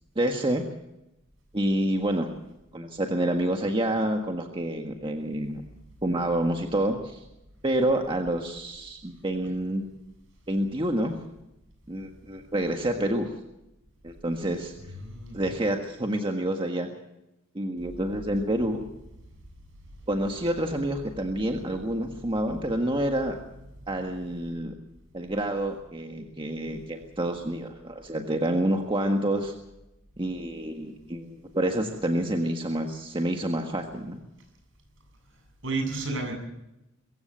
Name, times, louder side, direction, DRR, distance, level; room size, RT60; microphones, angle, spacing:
voice 1, 0.1-0.6 1.5-2.3 2.7-5.6 6.0-7.2 7.6-9.8 10.5-11.1 11.9-13.3 14.0-14.7 15.3-16.9 17.5-18.8 20.1-23.4 23.9-24.7 25.1-29.5 30.2-34.2, right 1 dB, 25° right, 3 dB, 1.6 m, -28 dB
voice 2, 15.0-15.4 35.6-36.3, right 3 dB, 65° right, 4 dB, 7.9 m, -31 dB
23.5 x 15.5 x 7.5 m, 0.91 s
head